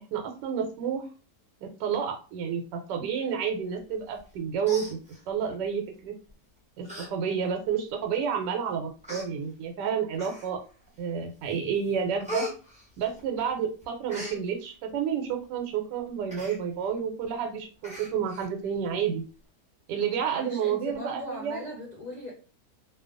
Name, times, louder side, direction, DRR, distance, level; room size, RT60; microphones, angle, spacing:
voice 1, 0.1-1.0 1.6-5.0 5.3-6.1 6.8-10.6 11.0-12.5 13.0-19.2 19.9-21.6, right 7 dB, 85° right, 4 dB, 1.2 m, -30 dB
Human voice, 4.2-4.3 4.6-5.5 6.3-6.4 6.8-7.1 7.5-7.6 8.4-8.5 9.0-9.3 10.1-10.7 11.2-11.5 11.8-13.5 13.8-14.4 16.3-16.6 17.0-17.1 17.3-17.5 17.8-18.5 18.8-18.9, left 1 dB, 10° right, 0.5 m, -39 dB
voice 2, 20.3-22.3, left 1 dB, 50° left, -4 dB, 0.5 m, -38 dB
2.7 x 2.2 x 2.4 m, 0.36 s
omnidirectional pair, 1.8 m